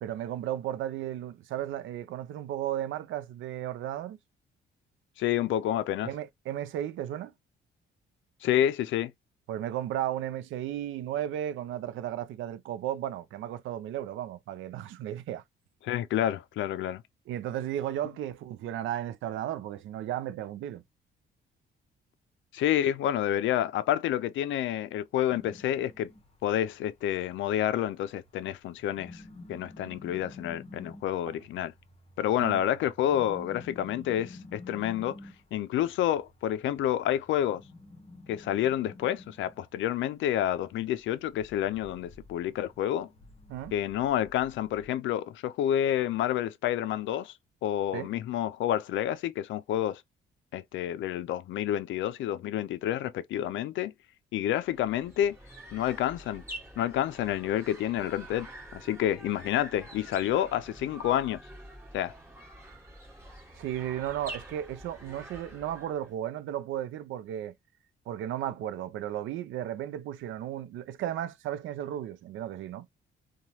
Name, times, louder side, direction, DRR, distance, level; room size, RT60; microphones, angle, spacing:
voice 1, 0.0-4.2 6.0-7.3 9.5-15.4 17.3-20.8 31.3-31.4 32.4-32.6 43.5-43.7 47.9-48.1 63.5-67.5 68.1-72.9, right 11 dB, 80° right, 0.5 m, -34 dB
voice 2, 5.2-6.1 8.4-9.1 15.8-17.0 22.5-26.1 26.4-29.2 29.5-31.7 32.2-35.2 35.5-37.6 38.3-43.1 43.7-47.3 47.6-50.0 50.5-53.9 54.3-55.4 55.7-56.4 56.8-61.4 61.9-62.1, left 11 dB, 75° left, 0.4 m, -29 dB
sound 1, 25.3-44.9, left 2 dB, 30° left, 0.8 m, -51 dB
sound 2, 54.6-66.1, right 1 dB, 10° right, 1.5 m, -47 dB
2.9 x 2.3 x 2.7 m
cardioid pair, 90°, 20 cm